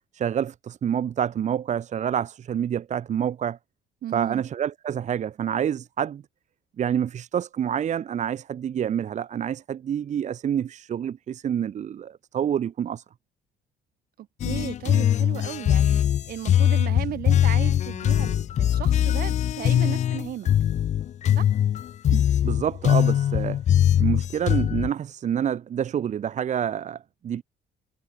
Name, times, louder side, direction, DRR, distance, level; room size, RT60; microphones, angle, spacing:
voice 1, 0.1-3.6 4.1-6.2 6.8-13.0 22.1-23.6 24.0-27.4, right 9 dB, 45° right, 1.1 m, -27 dB
voice 2, 4.0-4.4 14.2-20.5 21.4-21.5, right 12 dB, 60° right, 2.2 m, -35 dB
sound 1, 14.4-24.9, left 10 dB, 45° left, 0.5 m, -22 dB
cardioid pair, 110°, 17 cm